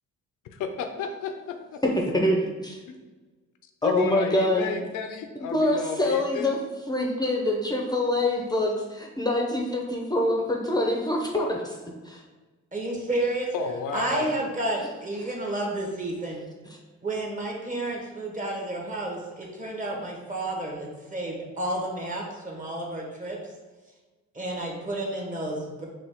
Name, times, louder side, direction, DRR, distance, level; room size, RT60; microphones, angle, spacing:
voice 1, 0.6-1.6 3.8-6.5 13.5-14.3, left 6 dB, 80° left, 6 dB, 0.6 m, -32 dB
voice 2, 2.1-2.8 3.8-4.7 5.5-6.6 6.9-11.8 12.0-12.2, left 1 dB, 15° left, 0 dB, 0.7 m, -25 dB
voice 3, 12.7-13.5 13.9-16.4 17.0-23.4 24.3-25.9, right 1 dB, 25° right, -1 dB, 1.3 m, -31 dB
5.0 x 3.0 x 3.5 m, 1.3 s
cardioid pair, 90°, 30 cm